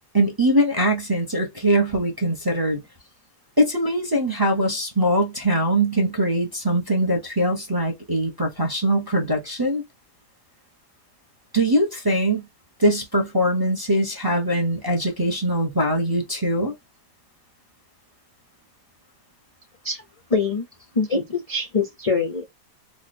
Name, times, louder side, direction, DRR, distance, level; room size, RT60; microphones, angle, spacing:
voice 1, 0.1-2.8 3.6-9.8 11.5-12.4 12.8-16.7, right 1 dB, 20° right, 0.6 m, -22 dB
voice 2, 20.3-20.7 20.9-22.4, left 4 dB, 60° left, 0.3 m, -23 dB
3.1 x 2.4 x 4.1 m
omnidirectional pair, 1.9 m